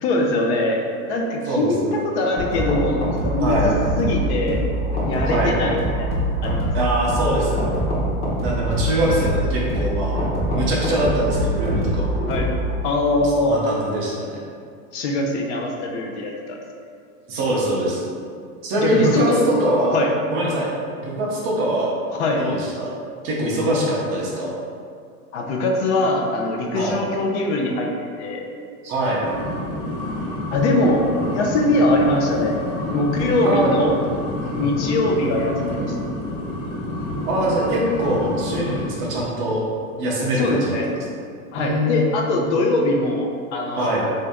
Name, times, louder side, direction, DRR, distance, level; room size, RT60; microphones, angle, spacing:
voice 1, 0.0-3.7 4.0-4.6 5.1-6.1 6.4-6.7 12.3-12.5 12.8-13.6 14.9-16.6 18.8-19.4 19.9-20.1 22.2-22.4 25.3-28.4 30.5-32.6 32.9-33.9 34.5-36.0 40.3-40.9 41.5-44.2, left 2 dB, 50° left, 1 dB, 0.6 m, -22 dB
voice 2, 1.5-1.9 3.4-3.7 5.3-5.7 6.7-7.7 8.4-10.2 10.5-12.2 13.2-14.4 17.3-18.0 18.6-20.0 20.3-21.9 22.4-22.9 23.2-24.5 26.7-27.0 28.8-29.2 33.4-33.7 34.4-34.6 37.3-39.6 40.0-40.8 41.6-42.0 43.8-44.0, right 1 dB, 30° right, -4 dB, 0.5 m, -23 dB
sound 1, 2.4-12.8, right 1 dB, 15° left, 0.8 m, -24 dB
sound 2, 29.2-39.3, left 1 dB, 80° left, 0.9 m, -29 dB
3.5 x 2.7 x 3.4 m, 2.3 s
supercardioid pair, 140°, 43 cm